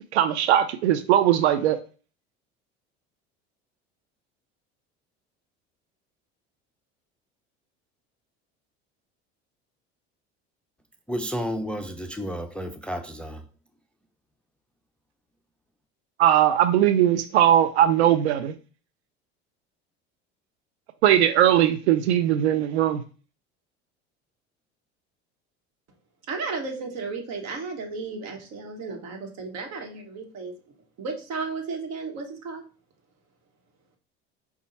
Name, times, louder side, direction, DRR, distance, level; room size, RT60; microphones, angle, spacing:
voice 1, 0.1-1.8 16.2-18.5 21.0-23.0, right 11 dB, 90° right, 0.5 m, -20 dB
voice 2, 11.1-13.4, equal, 5° left, 0.4 m, -31 dB
voice 3, 26.3-30.5 31.0-32.6, right 4 dB, 55° right, 1.4 m, -34 dB
5.2 x 2.4 x 4.0 m
hypercardioid pair, 80°, 32 cm